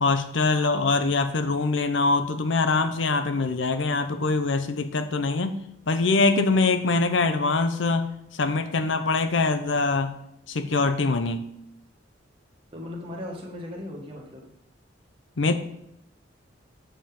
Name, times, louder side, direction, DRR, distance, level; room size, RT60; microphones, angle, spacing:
voice 1, 0.0-5.6 5.9-8.1 8.3-10.2 10.5-11.4 15.4-15.5, left 3 dB, 85° left, 10 dB, 0.7 m, -23 dB
voice 2, 12.7-14.5, left 1 dB, 30° right, -2 dB, 1.8 m, -37 dB
7.7 x 5.0 x 5.3 m, 0.77 s
head